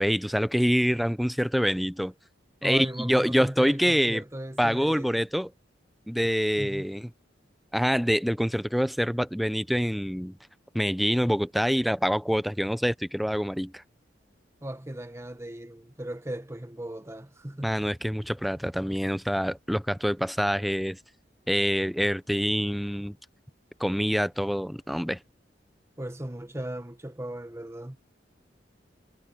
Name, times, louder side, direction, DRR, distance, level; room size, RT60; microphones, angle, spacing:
voice 1, 0.0-2.1 2.6-4.2 4.6-5.5 6.1-7.1 7.7-10.3 10.7-13.8 17.6-21.0 21.5-23.2 23.8-25.2, equal, ahead, 0.5 m, -26 dB
voice 2, 2.6-5.1 6.6-6.9 14.6-17.8 26.0-28.0, right 1 dB, 15° right, 1.2 m, -37 dB
head